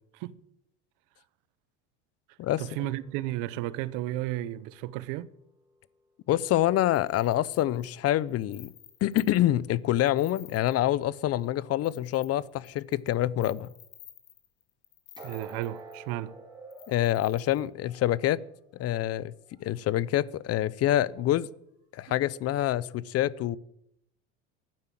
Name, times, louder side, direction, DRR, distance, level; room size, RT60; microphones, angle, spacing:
voice 1, 2.6-5.3 15.2-16.3, right 15 dB, 70° right, 0.9 m, -33 dB
sound 1, 2.7-5.8 15.2-19.1 19.5-19.7 20.3-20.4, right 2 dB, 15° right, 4.6 m, -50 dB
voice 2, 6.3-8.7 9.0-13.7 16.9-18.4 18.8-19.3 19.6-21.5 21.9-23.6, left 13 dB, 45° left, 0.7 m, -26 dB
sound 2, 6.8-9.6 10.0-10.9 11.4-11.5 11.8-16.1 16.7-17.7, left 12 dB, 60° left, 3.5 m, -52 dB
12.0 x 9.6 x 9.3 m
supercardioid pair, 105°, 33 cm